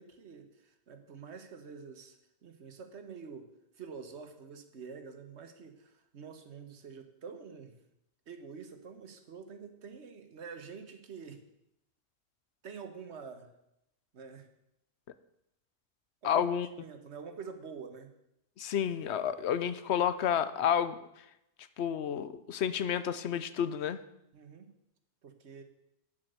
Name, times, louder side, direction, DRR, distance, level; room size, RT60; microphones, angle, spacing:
voice 1, 0.0-2.2 2.4-3.4 3.8-7.7 8.3-11.4 12.6-13.5 14.1-14.5 16.2-18.1 24.3-24.7 25.2-25.6, right 5 dB, 80° right, 8 dB, 1.4 m, -47 dB
voice 2, 16.2-16.7 18.6-21.0 21.8-24.0, left 8 dB, 75° left, 14 dB, 0.9 m, -30 dB
9.5 x 7.7 x 6.6 m, 0.85 s
omnidirectional pair, 1.1 m